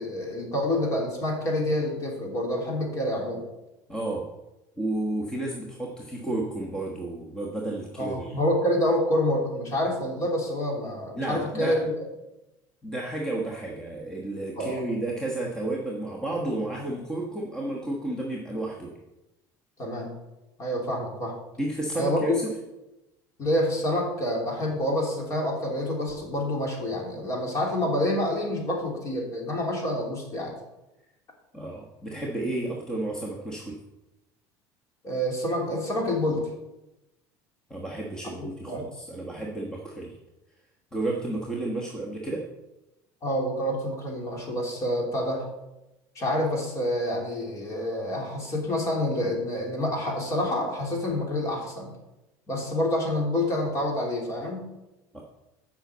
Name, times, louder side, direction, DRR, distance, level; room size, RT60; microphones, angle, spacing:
voice 1, 0.0-3.4 8.0-11.8 14.6-14.8 19.8-20.1 20.6-21.4 21.9-22.4 23.4-30.6 35.0-36.5 38.7-38.8 43.2-45.5 46.1-51.9 52.5-54.7, left 1 dB, 35° left, -1 dB, 3.0 m, -27 dB
voice 2, 3.9-4.3 4.8-8.4 11.1-11.8 12.8-18.9 21.6-22.5 31.5-33.8 37.7-40.2 40.9-42.4 55.1-55.2, right 2 dB, 10° left, -2 dB, 1.2 m, -32 dB
7.9 x 5.8 x 7.9 m, 0.96 s
cardioid pair, 155°, 9 cm